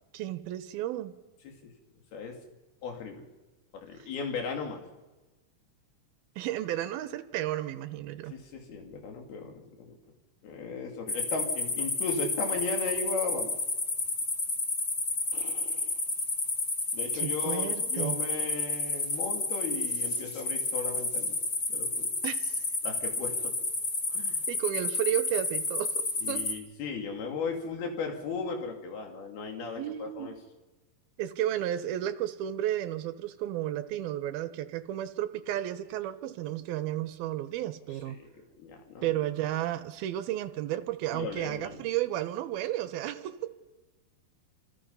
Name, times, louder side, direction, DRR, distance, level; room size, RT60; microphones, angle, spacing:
voice 1, 0.1-1.2 4.0-4.1 6.4-8.4 17.1-18.2 22.2-22.6 24.5-26.5 29.8-30.4 31.2-38.2 39.0-43.5, right 13 dB, 70° right, 11 dB, 2.8 m, -33 dB
voice 2, 2.8-3.2 3.7-4.8 8.3-10.0 10.4-13.6 15.3-15.9 16.9-21.4 21.7-22.1 22.8-23.5 24.1-24.4 26.2-30.4 38.2-38.3 38.6-39.1 41.1-41.8, left 4 dB, 70° left, 2 dB, 4.5 m, -36 dB
sound 1, 11.1-26.5, left 3 dB, 25° left, 2.7 m, -31 dB
28.0 x 27.5 x 5.6 m, 1.2 s
omnidirectional pair, 4.7 m